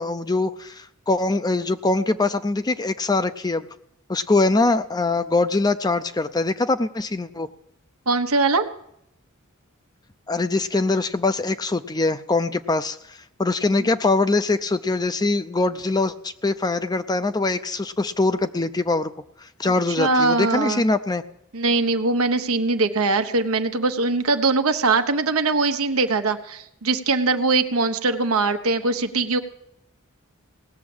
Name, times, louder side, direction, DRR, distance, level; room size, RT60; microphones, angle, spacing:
voice 1, 0.0-3.6 4.1-7.5 10.3-19.1 19.4-21.2, left 3 dB, 20° left, 11 dB, 0.5 m, -23 dB
voice 2, 8.1-8.7 13.8-13.9 19.6-20.8 21.5-29.4, right 3 dB, 90° right, 7 dB, 1.2 m, -22 dB
18.0 x 7.3 x 8.7 m, 0.76 s
head